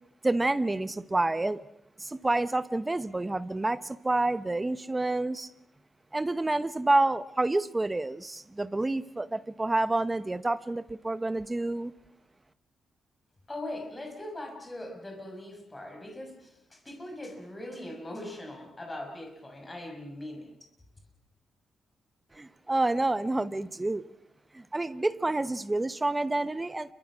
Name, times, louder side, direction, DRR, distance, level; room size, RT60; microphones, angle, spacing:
voice 1, 0.2-1.6 2.0-5.5 6.1-11.9 22.3-24.0 24.5-26.9, right 2 dB, 15° right, 0.9 m, -28 dB
voice 2, 13.5-20.5, left 1 dB, 15° left, 6.4 m, -41 dB
29.0 x 24.0 x 6.3 m
wide cardioid pair, 140°, 0 cm